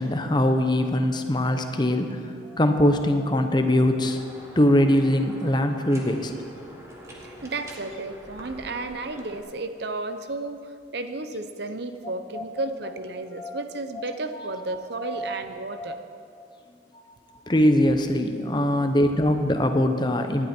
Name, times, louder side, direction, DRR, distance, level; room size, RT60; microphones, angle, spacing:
voice 1, 0.0-2.2 2.5-4.2 4.6-6.3 12.3-12.7 13.4-13.6 13.9-14.1 14.3-14.6 15.0-15.3 15.7-15.9 17.5-20.5, left 1 dB, 25° left, 6 dB, 0.8 m, -22 dB
sound 1, 4.0-9.4, equal, 15° right, 1.6 m, -45 dB
voice 2, 7.2-16.0, right 2 dB, 60° right, 9 dB, 0.8 m, -33 dB
18.0 x 11.0 x 4.5 m, 2.4 s
head